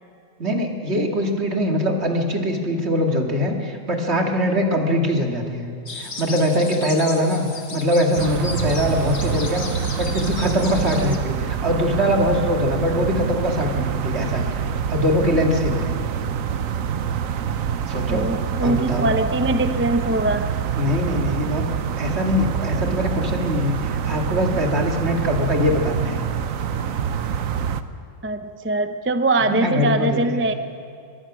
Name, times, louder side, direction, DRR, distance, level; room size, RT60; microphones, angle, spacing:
voice 1, 0.4-5.7 6.0-9.7 9.9-14.5 14.9-15.9 17.9-18.3 18.6-19.1 20.8-21.7 22.0-26.2 29.5-30.2, left 1 dB, 55° right, 2 dB, 2.5 m, -22 dB
sound 1, 5.9-11.2, left 4 dB, 80° left, 2.1 m, -35 dB
sound 2, 8.2-27.8, right 8 dB, 85° right, 1.2 m, -26 dB
voice 2, 18.1-20.5 28.2-30.5, right 2 dB, 15° right, 9 dB, 0.5 m, -22 dB
24.0 x 21.0 x 6.2 m, 2.4 s
omnidirectional pair, 1.3 m